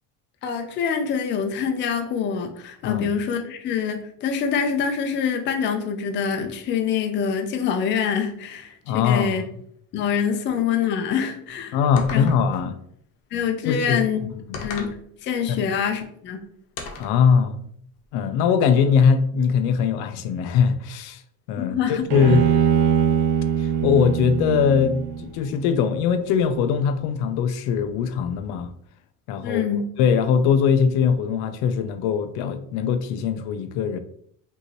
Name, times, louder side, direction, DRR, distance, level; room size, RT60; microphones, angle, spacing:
voice 1, 0.4-9.4 9.9-11.8 12.1-12.3 13.3-14.2 14.6-15.0 15.2-16.4 21.6-22.0 29.4-29.8, left 7 dB, 30° left, 0.4 m, -25 dB
voice 2, 8.9-9.4 11.7-12.7 13.6-14.1 14.5-14.6 15.5-15.6 17.0-17.6 18.1-21.2 21.5-22.5 23.6-28.7 29.3-34.0, left 6 dB, 80° left, 0.6 m, -21 dB
sound 1, 12.0-12.6 14.5-15.0 16.8-17.2, left 4 dB, 60° left, 0.9 m, -35 dB
Bowed string instrument, 22.1-25.4, right 8 dB, 85° right, 0.9 m, -22 dB
5.5 x 2.7 x 3.0 m
cardioid pair, 170°, 38 cm